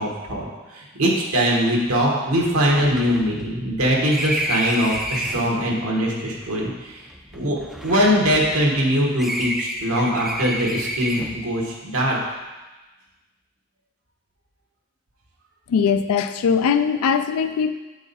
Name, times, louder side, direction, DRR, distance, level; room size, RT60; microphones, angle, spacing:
voice 1, 0.0-7.0 7.3-7.6 7.8-12.2, equal, 80° right, -2 dB, 1.3 m, -22 dB
sound 1, 1.8-1.9 2.3-5.6 6.4-8.8 9.2-11.5, equal, ahead, 0.3 m, -30 dB
voice 2, 15.7-17.7, left 6 dB, 85° left, 10 dB, 0.3 m, -20 dB
7.9 x 4.8 x 4.1 m, 1.2 s
head